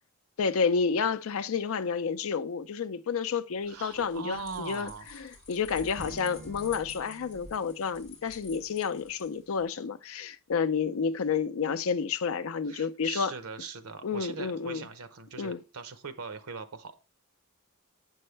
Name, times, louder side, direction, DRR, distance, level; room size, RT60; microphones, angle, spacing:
voice 1, 0.4-13.3 14.0-14.8 15.4-15.6, left 5 dB, 70° left, 0.5 m, -30 dB
sound 1, 3.6-9.7, left 3 dB, 30° left, 2.3 m, -49 dB
voice 2, 3.7-5.4 12.7-17.0, right 5 dB, 90° right, 0.8 m, -41 dB
Acoustic guitar / Strum, 5.9-9.0, right 3 dB, 40° right, 2.3 m, -50 dB
7.7 x 5.4 x 3.3 m
head